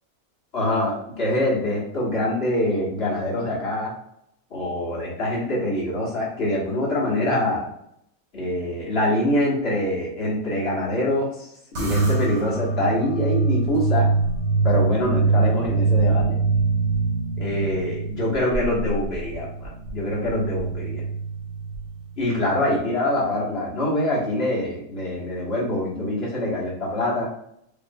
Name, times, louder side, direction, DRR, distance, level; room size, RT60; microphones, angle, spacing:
voice 1, 0.5-3.9 4.5-7.7 8.3-14.1 14.6-16.4 17.4-21.0 22.2-27.3, left 1 dB, 40° left, -6 dB, 1.6 m, -24 dB
sound 1, 11.8-22.4, right 4 dB, 50° right, 1.3 m, -24 dB
5.2 x 3.2 x 2.3 m, 0.74 s
omnidirectional pair, 1.7 m